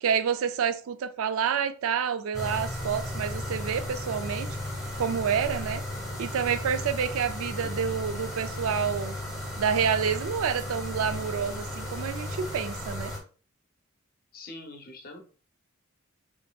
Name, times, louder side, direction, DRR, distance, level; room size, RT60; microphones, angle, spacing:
voice 1, 0.0-4.6 5.0-5.8 6.2-9.2 9.6-13.1, right 7 dB, 80° right, 0.3 m, -28 dB
sound 1, 2.3-13.2, left 1 dB, ahead, 0.8 m, -35 dB
voice 2, 14.3-15.2, left 2 dB, 45° left, 0.6 m, -44 dB
4.5 x 2.6 x 2.3 m
head